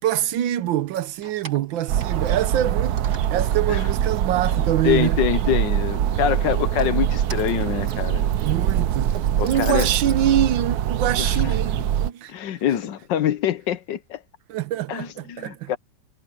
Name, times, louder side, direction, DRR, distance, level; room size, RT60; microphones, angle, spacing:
voice 1, 0.0-5.2 8.4-12.3 14.5-15.7, right 12 dB, 85° right, 1.6 m, -25 dB
Keys jangling, 0.8-2.7 3.0-4.6 5.0-5.8 6.5-10.2, right 4 dB, 40° right, 1.9 m, -42 dB
sound 1, 1.9-12.1, right 10 dB, 65° right, 1.2 m, -23 dB
voice 2, 4.8-8.2 9.4-9.9 11.2-11.8 12.3-14.2 14.9-15.8, left 10 dB, 70° left, 1.5 m, -25 dB
omnidirectional pair, 2.1 m